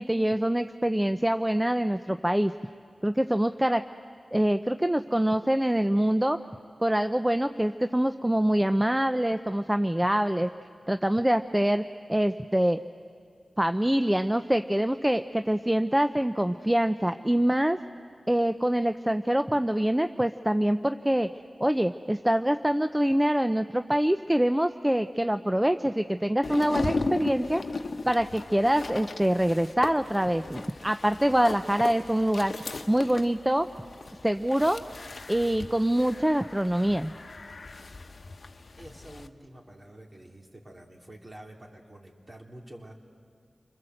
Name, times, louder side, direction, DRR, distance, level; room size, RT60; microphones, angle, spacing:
voice 1, 0.0-2.5 3.0-3.8 4.3-6.4 6.8-10.5 10.9-12.8 13.6-17.8 18.3-21.3 21.6-27.6 28.1-32.5 32.9-33.7 34.2-34.8 35.3-37.1, right 1 dB, 10° right, 9 dB, 0.7 m, -25 dB
sound 1, 26.4-39.3, left 3 dB, 60° left, 1.0 m, -37 dB
voice 2, 38.8-42.9, right 1 dB, 35° right, 1 dB, 3.5 m, -48 dB
29.5 x 21.5 x 7.9 m, 2.2 s
cardioid pair, 45°, 0 cm